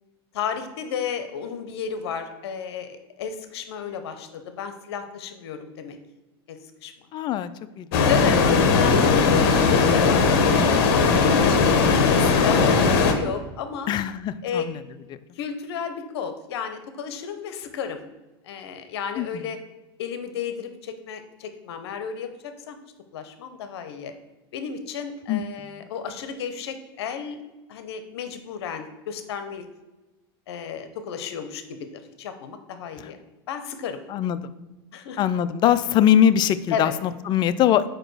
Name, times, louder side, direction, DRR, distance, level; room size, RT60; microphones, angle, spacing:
voice 1, 0.3-6.0 6.5-6.9 8.0-13.9 14.4-14.7 15.3-18.0 18.4-19.6 20.0-22.8 23.1-24.1 24.5-27.4 27.7-29.6 30.5-31.8 32.2-33.2 33.5-34.0 34.9-35.2 36.7-37.0, left 7 dB, 80° left, 8 dB, 0.8 m, -32 dB
voice 2, 7.1-8.1 13.9-14.8 19.2-19.3 25.3-25.4 34.1-34.4 35.2-37.9, left 10 dB, 35° left, 14 dB, 0.4 m, -22 dB
sound 1, 7.9-13.1, left 4 dB, 60° left, 1.1 m, -18 dB
5.1 x 4.8 x 6.2 m, 1.1 s
supercardioid pair, 130°, 13 cm